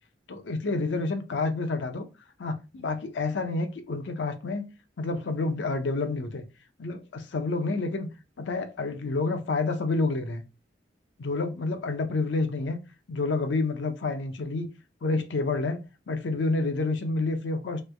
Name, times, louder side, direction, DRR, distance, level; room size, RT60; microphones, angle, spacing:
voice 1, 0.3-2.1 2.4-4.7 5.0-6.4 6.8-8.1 8.4-10.4 11.2-12.8 13.1-14.7 15.0-17.8, left 3 dB, 75° left, 0.5 m, -29 dB
3.2 x 2.1 x 3.3 m
head